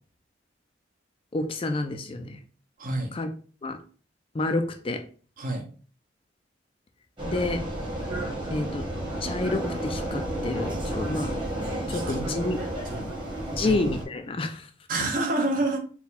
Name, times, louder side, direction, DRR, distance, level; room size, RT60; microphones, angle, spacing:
voice 1, 1.3-2.4 3.1-3.3 3.6-3.8 4.3-5.0 7.3-7.6 8.5-8.8 9.2-11.3 11.9-12.6 13.0-13.1 13.5-14.7, left 2 dB, 30° left, 6 dB, 0.4 m, -29 dB
voice 2, 2.8-3.1 5.4-5.7 11.9-12.2 12.8-13.2 13.6-13.7 14.9-15.8, right 2 dB, 45° right, 2 dB, 0.9 m, -28 dB
Vehicle, 7.2-14.1, right 1 dB, 25° right, 1.3 m, -31 dB
4.3 x 2.3 x 4.0 m, 0.40 s
head